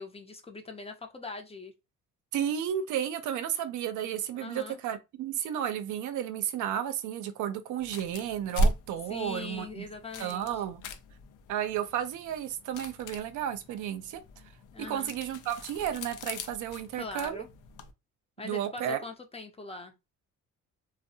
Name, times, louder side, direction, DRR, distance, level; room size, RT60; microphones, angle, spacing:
voice 1, 0.0-1.7 4.3-4.8 9.1-10.6 14.7-15.1 16.9-17.5 18.4-19.9, left 3 dB, 20° left, 0.5 m, -41 dB
voice 2, 2.3-9.9 10.2-10.9 11.5-14.2 14.9-17.4 18.4-19.0, right 10 dB, 80° right, 0.5 m, -33 dB
sound 1, 7.8-17.9, equal, 85° left, 0.5 m, -37 dB
2.6 x 2.0 x 2.6 m
cardioid pair, 90°, 30 cm